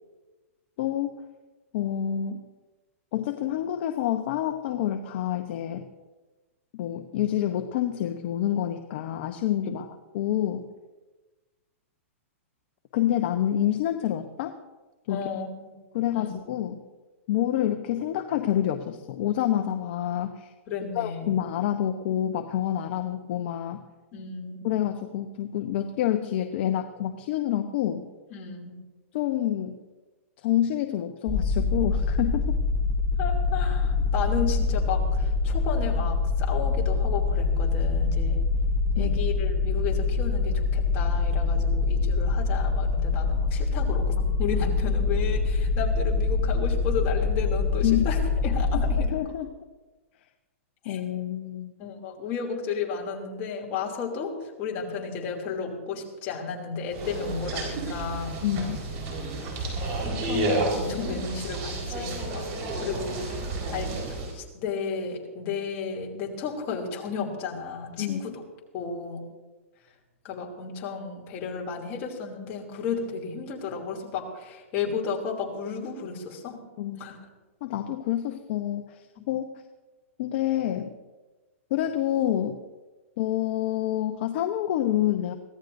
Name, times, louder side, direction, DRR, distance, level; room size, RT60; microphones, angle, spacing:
voice 1, 0.8-1.2 1.7-2.4 3.1-5.9 6.7-10.6 12.9-14.6 15.1-15.3 15.9-16.8 17.3-20.5 20.9-23.8 24.6-28.0 29.1-29.8 30.4-32.6 39.0-39.2 47.8-48.1 48.7-48.8 49.1-49.5 50.8-51.7 58.4-58.8 68.0-68.2 76.8-77.0 77.6-79.5 80.2-81.0 81.7-82.6 83.2-85.3, left 11 dB, 50° left, 6 dB, 0.9 m, -27 dB
voice 2, 15.1-15.7 16.1-16.3 20.7-21.3 24.1-24.7 28.3-28.8 33.2-38.4 38.9-49.1 50.8-51.0 51.8-54.3 54.6-58.4 59.8-62.5 62.8-63.4 63.7-68.4 68.7-69.2 70.2-76.6 77.0-77.2 79.2-79.3, left 5 dB, 35° left, 0 dB, 2.8 m, -33 dB
sound 1, 31.3-49.1, left 4 dB, 10° left, 1.6 m, -25 dB
sound 2, 56.9-64.3, right 2 dB, 40° right, 4.5 m, -31 dB
23.5 x 16.0 x 2.7 m, 1.2 s
hypercardioid pair, 155°, 8 cm